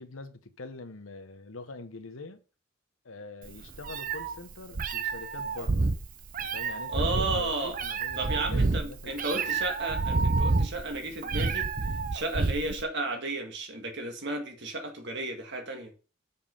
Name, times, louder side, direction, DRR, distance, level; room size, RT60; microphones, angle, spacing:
voice 1, 0.0-2.4 3.0-5.9 6.5-9.6, left 3 dB, 85° left, 1.0 m, -44 dB
Meow, 3.5-12.8, right 3 dB, 45° right, 0.7 m, -29 dB
voice 2, 6.9-7.8 8.2-11.7 12.1-15.9, right 2 dB, 60° right, 2.0 m, -33 dB
7.2 x 5.4 x 5.5 m
head